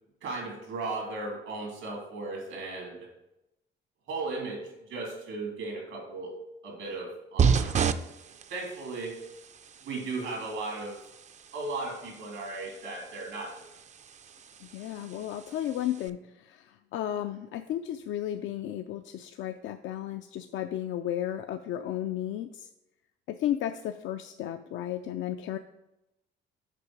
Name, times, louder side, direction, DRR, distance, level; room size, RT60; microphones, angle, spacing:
voice 1, 0.2-3.1 4.1-4.6 4.9-6.3 6.6-8.1 8.5-9.1 9.8-11.0 11.5-13.7, right 3 dB, 90° right, -1 dB, 3.0 m, -36 dB
sound 1, 7.4-16.1, right 6 dB, 35° right, 0.4 m, -33 dB
voice 2, 14.6-22.7 23.3-25.6, left 11 dB, 80° left, 8 dB, 0.4 m, -34 dB
6.8 x 5.2 x 4.8 m, 0.91 s
cardioid pair, 90°, 20 cm